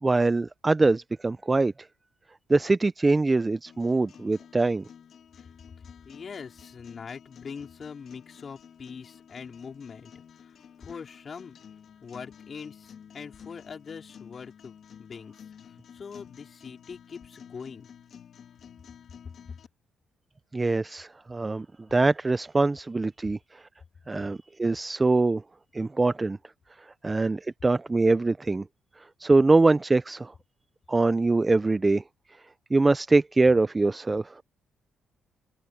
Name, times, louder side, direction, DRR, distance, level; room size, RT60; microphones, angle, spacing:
voice 1, 0.0-1.7 2.5-4.9 20.5-21.7 21.9-23.6 24.1-25.4 25.7-26.4 27.0-28.7 29.2-30.3 30.9-32.0 32.7-34.4, right 3 dB, 20° right, 0.5 m, -23 dB
sound 1, 3.7-19.7, left 8 dB, 60° left, 2.0 m, -51 dB
voice 2, 6.0-11.6 12.0-15.3 15.7-17.9, left 6 dB, 45° left, 4.2 m, -43 dB
cardioid pair, 90°, 0 cm